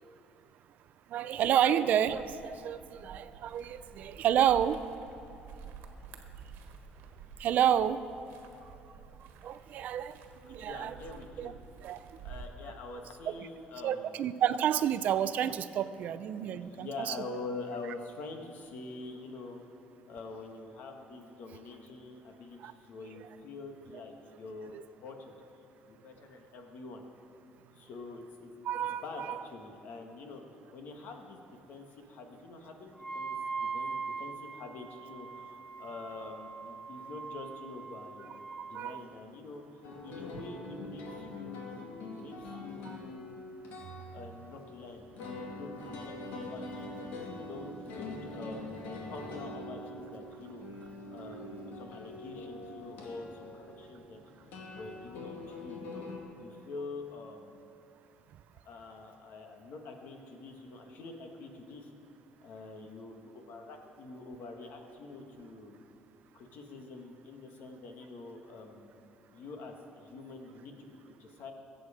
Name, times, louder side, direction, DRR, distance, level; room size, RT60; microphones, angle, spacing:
voice 1, 1.1-4.8 7.4-8.0 9.4-10.1 10.5-10.9 11.4-11.5 11.8-12.0 13.3-13.4 13.8-17.1 22.6-22.7 24.7-24.8 28.6-29.4 38.7-39.0, right 10 dB, 50° right, 13 dB, 0.5 m, -29 dB
sound 1, 2.0-12.5, right 6 dB, 80° right, 1.3 m, -50 dB
voice 2, 10.6-11.6 12.2-14.2 16.7-19.6 20.1-25.4 25.8-27.0 27.7-28.5 28.9-30.4 30.7-38.4 38.7-39.6 40.0-43.3 44.1-47.0 47.3-48.7 49.1-50.6 51.1-54.2 54.7-56.1 56.4-57.7 58.6-61.9 62.4-65.8 66.3-69.0 69.3-71.5, left 3 dB, 55° left, 3 dB, 1.6 m, -46 dB
Wind instrument woodwind instrument, 33.0-38.8, right 5 dB, 5° right, 0.6 m, -41 dB
sound 2, 39.8-56.2, left 2 dB, 75° left, 2.3 m, -44 dB
22.0 x 8.1 x 5.0 m, 2.7 s
cardioid pair, 170°, 4 cm